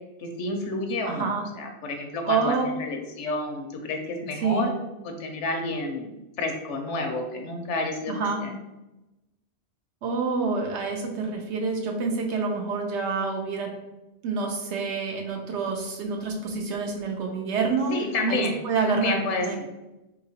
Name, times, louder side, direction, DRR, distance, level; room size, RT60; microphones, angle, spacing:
voice 1, 0.2-1.3 1.6-4.7 5.0-6.1 6.4-8.6 17.9-18.6 18.9-19.6, left 1 dB, 85° left, 3 dB, 1.0 m, -29 dB
voice 2, 1.1-1.4 2.2-2.7 4.4-4.7 8.1-8.4 10.0-13.7 14.2-17.9 18.3-19.6, right 4 dB, 80° right, 1 dB, 0.9 m, -27 dB
3.9 x 2.9 x 2.7 m, 1.0 s
omnidirectional pair, 1.2 m